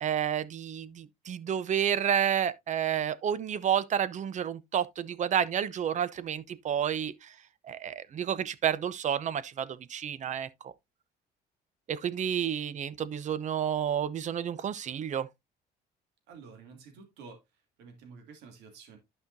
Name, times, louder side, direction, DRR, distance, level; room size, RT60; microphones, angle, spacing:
voice 1, 0.0-7.1 7.7-10.7 11.9-15.3, right 9 dB, 45° right, 0.8 m, -30 dB
voice 2, 16.3-17.4 17.8-19.0, right 5 dB, 85° right, 2.7 m, -50 dB
11.5 x 5.7 x 2.7 m
cardioid pair, 110°, 17 cm